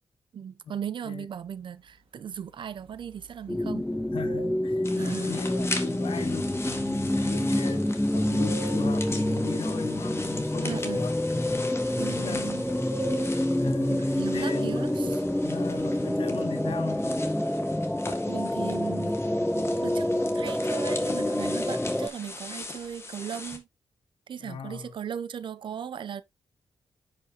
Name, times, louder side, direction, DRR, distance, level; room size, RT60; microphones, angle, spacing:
voice 1, 0.3-3.9 5.0-5.4 10.6-11.1 12.0-12.7 13.9-15.1 18.3-19.2 19.6-23.7 24.3-26.2, right 8 dB, 65° right, 0.7 m, -37 dB
sound 1, 1.3-16.0, right 3 dB, 85° right, 2.1 m, -47 dB
sound 2, 3.5-22.1, left 1 dB, 5° left, 0.5 m, -27 dB
voice 2, 4.1-11.7 12.0-12.6 13.1-17.3 24.4-24.9, left 7 dB, 75° left, 1.1 m, -38 dB
sound 3, 4.8-23.6, left 3 dB, 30° left, 1.7 m, -40 dB
9.8 x 5.1 x 2.9 m
wide cardioid pair, 110°, 9 cm